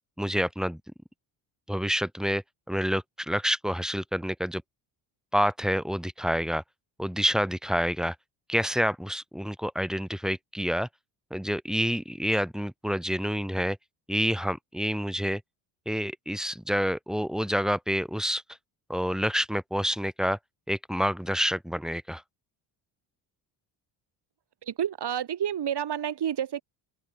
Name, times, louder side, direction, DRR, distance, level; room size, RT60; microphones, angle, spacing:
voice 1, 0.2-0.8 1.7-4.6 5.3-6.6 7.0-8.1 8.5-10.9 11.3-13.8 14.1-15.4 15.8-18.4 18.9-20.4 20.7-22.2, equal, ahead, 1.6 m, -28 dB
voice 2, 24.7-26.6, right 9 dB, 50° right, 3.4 m, -29 dB
open air
supercardioid pair, 65°, 49 cm